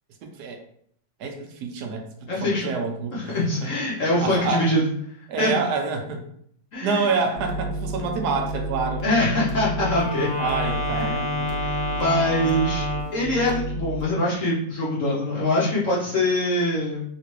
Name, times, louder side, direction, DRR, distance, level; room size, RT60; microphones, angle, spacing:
voice 1, 0.2-0.6 1.2-3.7 4.2-4.7 5.3-6.3 6.8-9.1 10.0-10.1 10.4-11.7, right 4 dB, 75° right, 4 dB, 1.0 m, -28 dB
voice 2, 2.3-2.7 3.1-4.8 5.4-5.6 6.7-7.1 9.0-10.3 10.9-11.1 11.6-12.8 13.1-17.0, left 1 dB, 60° left, -6 dB, 0.8 m, -23 dB
sound 1, 7.3-14.1, equal, 90° right, 0.6 m, -31 dB
Wind instrument woodwind instrument, 9.7-13.3, left 1 dB, 90° left, 1.4 m, -29 dB
3.2 x 2.9 x 3.0 m, 0.66 s
omnidirectional pair, 2.1 m